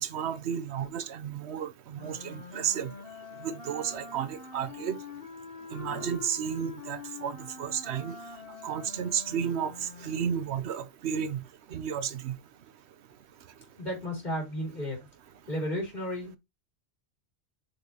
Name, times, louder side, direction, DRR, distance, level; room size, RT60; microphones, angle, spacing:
voice 1, 0.0-2.9 3.4-5.0 5.7-8.1 8.6-11.4 11.7-12.4, right 8 dB, 85° right, 1.0 m, -32 dB
Wind instrument woodwind instrument, 1.9-10.5, left 5 dB, 60° left, 1.4 m, -45 dB
voice 2, 13.8-15.0 15.5-16.4, equal, 45° left, 3.5 m, -33 dB
6.7 x 5.5 x 2.9 m
omnidirectional pair, 1.1 m